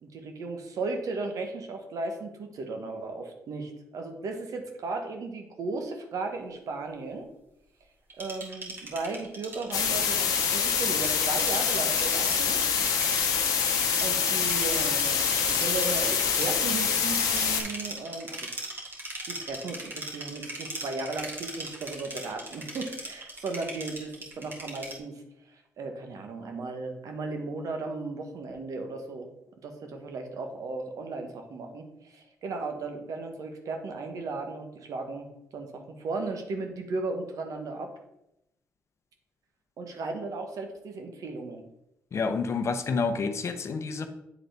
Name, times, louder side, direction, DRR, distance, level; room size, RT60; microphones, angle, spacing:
voice 1, 0.0-7.3 8.2-12.6 14.0-18.5 19.3-25.2 25.5-29.3 29.6-35.3 35.5-37.9 39.8-41.6, right 3 dB, 70° right, 4 dB, 1.1 m, -36 dB
sound 1, 8.1-25.0, right 2 dB, 35° right, 1.8 m, -39 dB
sound 2, 9.7-17.6, left 7 dB, 80° left, 0.9 m, -26 dB
voice 2, 42.1-44.1, left 4 dB, 50° left, 8 dB, 0.7 m, -29 dB
8.2 x 3.9 x 3.4 m, 0.83 s
cardioid pair, 75°, 6 cm